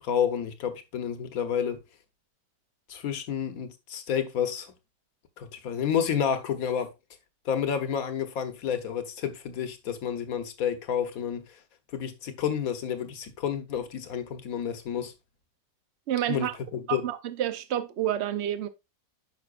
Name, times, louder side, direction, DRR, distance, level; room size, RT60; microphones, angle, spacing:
voice 1, 0.0-1.8 2.9-4.7 5.4-6.9 7.4-11.4 11.9-15.1 16.3-17.1, left 8 dB, 55° left, 1.3 m, -30 dB
voice 2, 16.1-16.6 16.9-18.7, right 11 dB, 60° right, 0.7 m, -29 dB
9.5 x 5.8 x 2.4 m
omnidirectional pair, 1.9 m